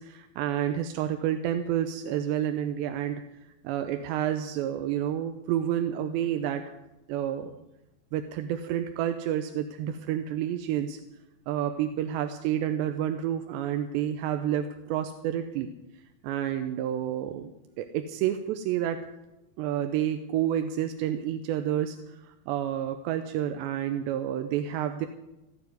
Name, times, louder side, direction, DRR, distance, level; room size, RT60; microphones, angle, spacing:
voice 1, 0.0-3.2 3.6-6.6 7.1-7.6 8.1-11.0 11.5-15.7 16.2-17.5 17.8-19.0 19.6-25.1, right 10 dB, 85° right, 7 dB, 3.0 m, -29 dB
15.5 x 9.3 x 9.5 m, 0.94 s
omnidirectional pair, 5.0 m